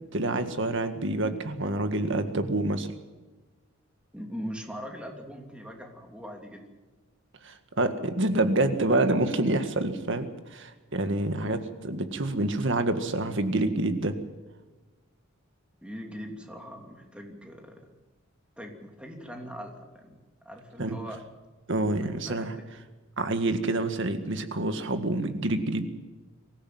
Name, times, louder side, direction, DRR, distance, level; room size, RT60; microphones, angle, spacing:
voice 1, 0.1-2.9 7.4-14.1 20.8-21.0 21.7-22.6 23.2-25.8, right 2 dB, 60° right, 8 dB, 1.8 m, -27 dB
voice 2, 4.1-6.6 11.3-11.6 15.8-17.9 18.6-20.2 20.4-21.2 22.0-22.5, equal, 5° right, 2 dB, 2.9 m, -41 dB
24.0 x 15.5 x 7.8 m, 1.2 s
head